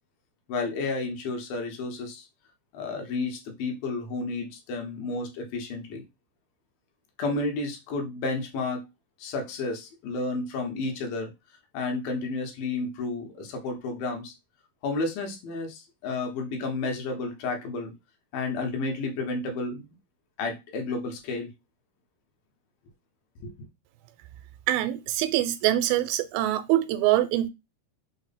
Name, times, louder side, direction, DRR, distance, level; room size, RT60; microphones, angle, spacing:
voice 1, 0.5-2.3 2.7-6.0 7.2-8.9 9.2-11.3 11.7-14.3 14.8-17.9 18.3-19.9 20.4-21.5 23.4-23.5, left 3 dB, 75° left, 2.7 m, -31 dB
voice 2, 24.7-27.5, right 14 dB, 90° right, 2.4 m, -24 dB
6.0 x 2.1 x 4.1 m
omnidirectional pair, 4.2 m